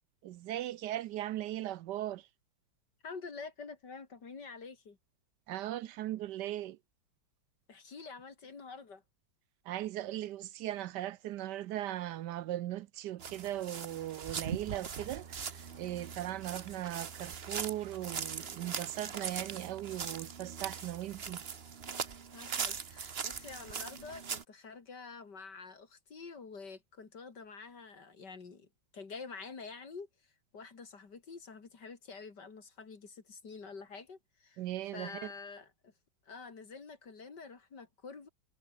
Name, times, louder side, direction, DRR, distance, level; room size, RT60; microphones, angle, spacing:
voice 1, 0.2-2.2 5.5-6.8 9.7-21.4 34.6-35.1, right 13 dB, 70° right, 1.1 m, -38 dB
voice 2, 3.0-5.0 7.7-9.0 22.3-30.1 30.5-34.6 34.9-35.9 36.3-38.3, left 4 dB, 60° left, 3.2 m, -48 dB
sound 1, 13.2-24.4, right 6 dB, 40° right, 1.2 m, -41 dB
omnidirectional pair, 2.1 m